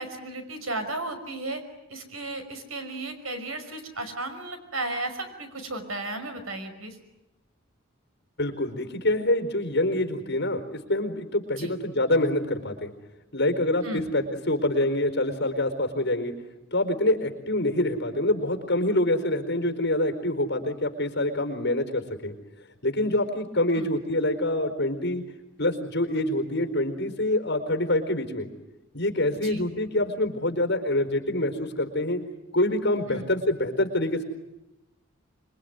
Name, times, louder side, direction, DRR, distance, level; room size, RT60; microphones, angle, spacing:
voice 1, 0.0-1.6 1.9-7.0 11.6-11.8 13.8-14.1 23.7-23.9 29.3-29.7 33.1-33.3, right 2 dB, 85° right, 8 dB, 5.5 m, -34 dB
voice 2, 8.4-12.9 13.3-16.3 16.7-22.3 22.8-25.2 25.6-28.5 28.9-32.2 32.5-34.2, left 1 dB, 55° left, 7 dB, 4.4 m, -26 dB
26.5 x 23.0 x 9.5 m, 0.94 s
head